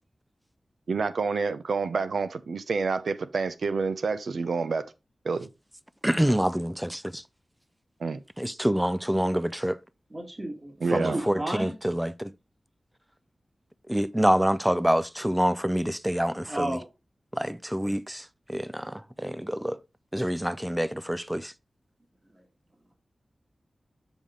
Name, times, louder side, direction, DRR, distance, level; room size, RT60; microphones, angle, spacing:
voice 1, 0.9-4.9 5.2-5.5 8.0-8.2 10.8-11.2, right 4 dB, 85° right, 0.6 m, -28 dB
voice 2, 6.0-7.2 8.4-9.8 10.9-12.3 13.9-16.8 17.3-19.8 20.1-21.5, equal, 5° right, 0.4 m, -26 dB
voice 3, 10.1-11.7 16.5-16.9 22.3-22.4, right 1 dB, 30° right, 1.9 m, -33 dB
7.2 x 5.0 x 3.8 m
wide cardioid pair, 85°, 0 cm